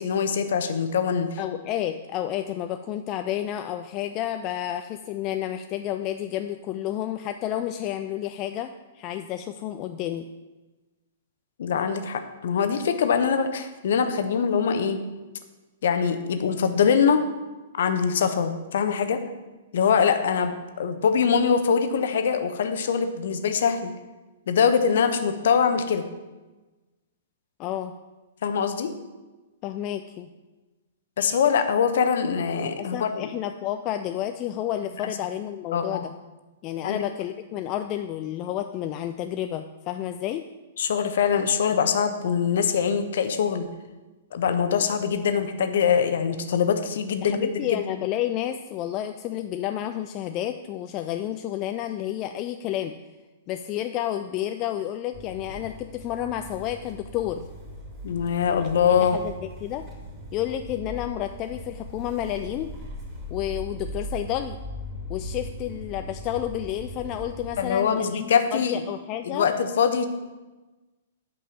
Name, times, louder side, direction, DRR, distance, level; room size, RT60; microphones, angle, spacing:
voice 1, 0.0-1.4 11.6-15.0 15.8-17.2 17.7-19.2 19.7-23.9 24.5-26.0 28.4-28.9 31.2-33.3 35.7-36.1 36.8-37.0 40.8-43.7 44.3-47.8 58.0-59.2 67.6-68.8 69.2-70.1, left 7 dB, 55° left, 8 dB, 0.9 m, -23 dB
voice 2, 1.4-10.3 27.6-27.9 29.6-30.3 32.8-36.1 36.6-40.5 47.2-52.9 53.5-57.5 58.8-59.9 60.3-62.7 63.3-64.6 65.1-69.5, left 12 dB, 30° left, 7 dB, 0.4 m, -30 dB
Motor vehicle (road) / Engine starting, 55.1-67.6, equal, 25° right, 2.7 m, -39 dB
8.4 x 5.4 x 7.2 m, 1.2 s
figure-of-eight pair, 110°, 0 cm